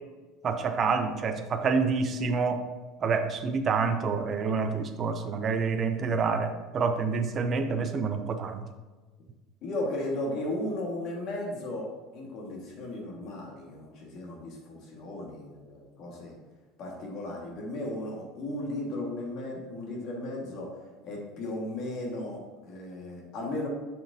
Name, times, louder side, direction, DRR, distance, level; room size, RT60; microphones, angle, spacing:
voice 1, 0.4-2.7 3.0-8.6, right 5 dB, 25° right, 0.4 m, -28 dB
voice 2, 9.6-11.9 12.1-16.4 16.8-20.7 21.0-23.7, left 1 dB, 45° left, 1.6 m, -35 dB
7.4 x 5.9 x 2.7 m
cardioid pair, 175°, 0 cm